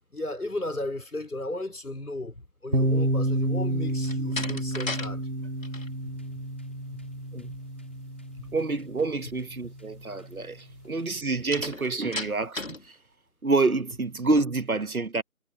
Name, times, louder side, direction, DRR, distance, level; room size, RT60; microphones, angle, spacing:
voice 1, 0.1-5.2 6.0-6.2 6.9-7.0 7.3-7.5 8.4-8.5, left 1 dB, 80° left, 5.6 m, -35 dB
sound 1, 2.7-10.4, right 1 dB, 90° right, 3.1 m, -30 dB
Slam, 4.0-5.1 5.4-5.9 11.5-12.9, left 2 dB, 60° left, 3.5 m, -35 dB
sound 2, 5.8-12.3, left 1 dB, 10° left, 2.9 m, -55 dB
voice 2, 8.5-13.0 13.4-15.2, right 3 dB, 75° right, 1.5 m, -27 dB
figure-of-eight pair, 180°, 44 cm